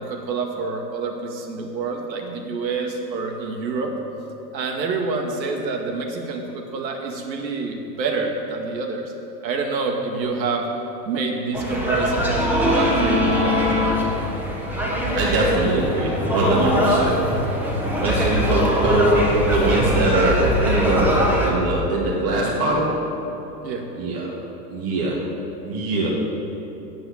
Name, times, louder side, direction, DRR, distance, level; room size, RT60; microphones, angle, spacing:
voice 1, 0.0-3.9 4.5-9.1 9.4-10.7 11.1-13.6 23.6-23.9, right 4 dB, 80° right, 2 dB, 2.1 m, -27 dB
sound 1, 11.5-21.5, equal, 5° right, 1.3 m, -22 dB
voice 2, 15.1-17.2 18.0-23.0 24.0-24.3 24.7-25.2 25.6-26.1, right 2 dB, 30° right, -5 dB, 2.0 m, -22 dB
9.0 x 8.0 x 8.6 m, 2.9 s
hypercardioid pair, 135°, 50 cm